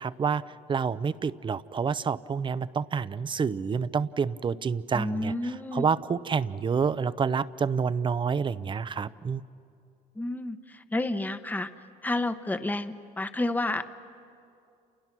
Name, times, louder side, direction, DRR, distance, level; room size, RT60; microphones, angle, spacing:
voice 1, 0.0-9.4, right 6 dB, 30° right, 17 dB, 0.6 m, -28 dB
voice 2, 4.9-5.9 10.2-11.7 12.0-13.9, left 2 dB, 10° left, 10 dB, 1.0 m, -30 dB
30.0 x 28.5 x 6.0 m, 2.5 s
cardioid pair, 110°, 17 cm